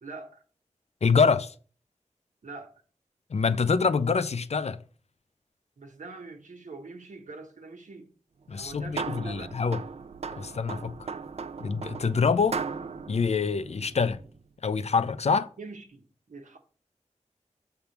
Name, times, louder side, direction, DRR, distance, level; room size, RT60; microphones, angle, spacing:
voice 1, 0.0-0.4 2.4-2.7 5.8-8.1 8.6-9.6 15.6-16.6, right 3 dB, 90° right, 1.2 m, -44 dB
voice 2, 1.0-1.5 3.3-4.8 8.5-9.8 10.3-11.1 11.6-12.6 13.1-14.2 14.6-15.5, left 5 dB, 60° left, 0.5 m, -25 dB
sound 1, 8.5-14.4, right 5 dB, 55° right, 0.4 m, -38 dB
6.8 x 3.5 x 5.8 m
wide cardioid pair, 75°, 13 cm